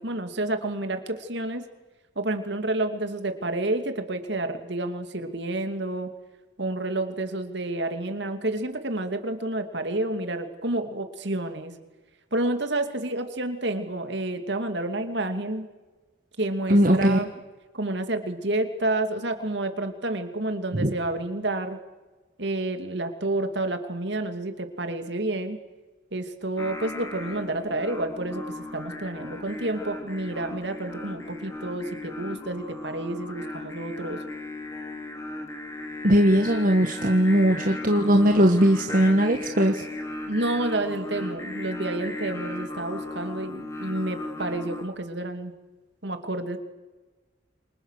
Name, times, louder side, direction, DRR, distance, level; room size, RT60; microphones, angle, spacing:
voice 1, 0.0-1.6 2.2-6.1 6.6-11.7 12.3-15.7 16.4-17.3 17.7-21.8 22.4-25.6 26.1-34.2 40.3-45.5 46.0-46.6, right 2 dB, 65° right, 7 dB, 2.6 m, -29 dB
voice 2, 16.7-17.2 20.7-20.9 36.0-39.8, equal, 45° right, 3 dB, 1.5 m, -19 dB
Singing, 26.6-44.8, left 2 dB, 15° left, 3.4 m, -36 dB
28.5 x 25.0 x 6.7 m, 1.2 s
head